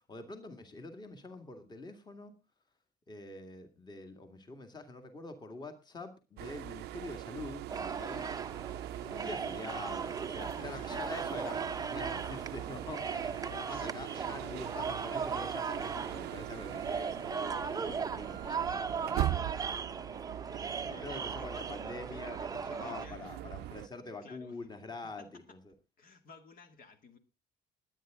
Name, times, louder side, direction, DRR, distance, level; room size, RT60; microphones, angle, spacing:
voice 1, 0.0-2.3 3.1-8.3 9.1-20.2 20.9-25.7, left 3 dB, 25° left, 7 dB, 2.1 m, -46 dB
sound 1, 6.4-23.9, right 15 dB, 80° right, 0.6 m, -41 dB
sound 2, 7.7-23.1, right 5 dB, 20° right, 0.7 m, -38 dB
voice 2, 9.0-9.6 10.4-11.1 13.7-14.0 20.5-23.9 24.2-24.7 25.0-25.3 26.0-27.2, left 5 dB, 55° left, 7 dB, 2.2 m, -55 dB
20.5 x 9.3 x 3.7 m, 0.29 s
cardioid pair, 110°, 17 cm